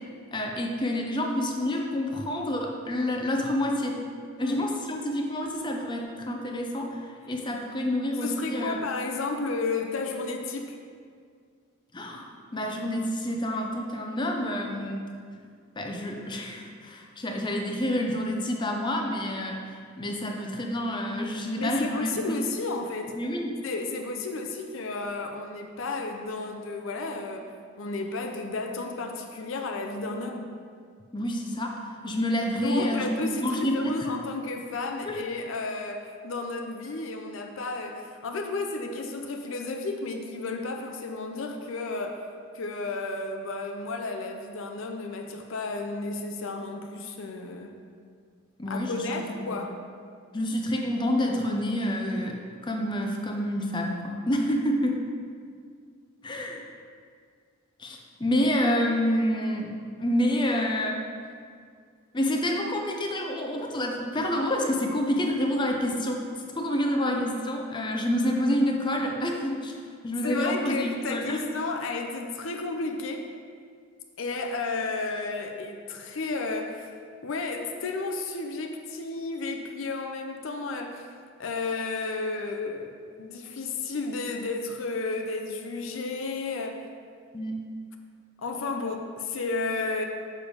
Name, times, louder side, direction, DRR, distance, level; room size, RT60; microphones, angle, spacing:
voice 1, 0.3-4.0 4.4-8.8 11.9-15.1 15.8-22.3 23.2-23.6 31.1-34.0 35.1-35.2 48.6-49.6 50.3-52.4 52.6-55.0 56.2-56.6 57.8-61.0 62.1-66.2 66.6-69.7 70.0-71.4 87.3-87.6, left 1 dB, 20° left, 1 dB, 0.6 m, -28 dB
voice 2, 8.2-10.8 21.6-23.2 23.6-30.5 32.6-42.2 42.5-47.8 48.7-49.8 70.2-73.3 74.2-76.9 77.2-81.1 81.4-82.9 83.2-86.8 88.4-90.0, left 3 dB, 70° left, 3 dB, 0.6 m, -32 dB
6.8 x 5.0 x 4.8 m, 2.1 s
head